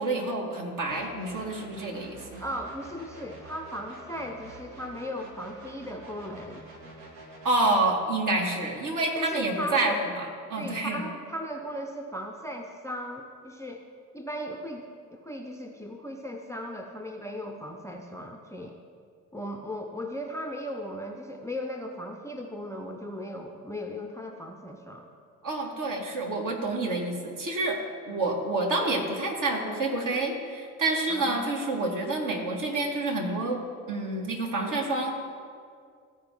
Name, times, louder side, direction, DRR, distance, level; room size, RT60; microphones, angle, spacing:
voice 1, 0.0-2.4 7.4-11.0 25.4-27.8 28.1-33.6 33.9-35.1, right 2 dB, 45° right, 0 dB, 1.8 m, -28 dB
sound 1, 0.9-7.7, right 2 dB, 60° right, 1.7 m, -47 dB
voice 2, 2.4-6.7 9.1-10.0 10.6-13.8 14.1-18.8 19.3-25.1 31.1-31.5, equal, 5° left, 3 dB, 0.6 m, -37 dB
14.5 x 4.9 x 4.5 m, 2.2 s
figure-of-eight pair, 40°, 43 cm